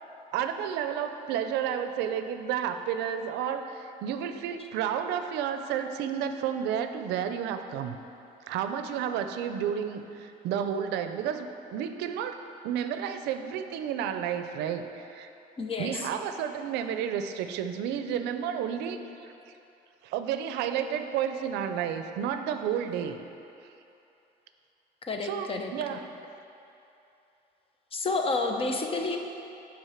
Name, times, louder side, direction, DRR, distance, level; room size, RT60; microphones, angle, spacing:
voice 1, 0.3-8.0 8.5-12.4 12.6-15.3 15.8-19.3 20.0-23.2 25.2-26.1, right 8 dB, 90° right, 8 dB, 0.5 m, -31 dB
voice 2, 15.6-16.1 25.0-26.0 27.9-29.2, left 3 dB, 35° left, 3 dB, 0.8 m, -30 dB
8.0 x 5.2 x 5.8 m, 2.8 s
cardioid pair, 110°, 17 cm